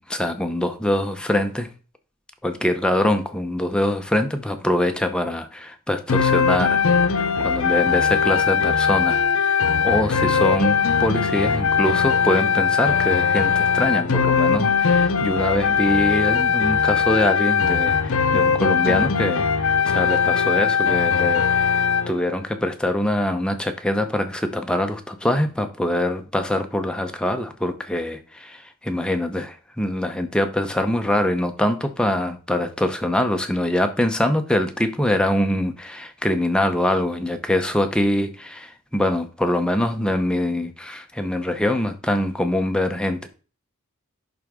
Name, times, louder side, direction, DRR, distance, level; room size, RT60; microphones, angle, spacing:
voice 1, 0.0-1.7 2.4-6.8 7.1-43.3, left 1 dB, 5° left, 0.6 m, -24 dB
sound 1, 6.1-22.1, left 6 dB, 70° left, 0.7 m, -20 dB
11.0 x 3.9 x 3.6 m
head